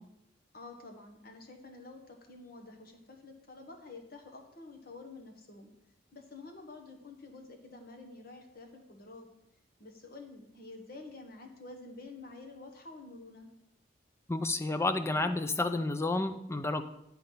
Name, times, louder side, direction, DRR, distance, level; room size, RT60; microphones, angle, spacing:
voice 1, 0.5-5.7 6.1-9.3 9.8-13.5, left 3 dB, 50° left, 4 dB, 1.2 m, -49 dB
voice 2, 14.3-16.8, left 2 dB, 15° left, 9 dB, 0.4 m, -30 dB
10.5 x 4.5 x 5.5 m, 0.84 s
head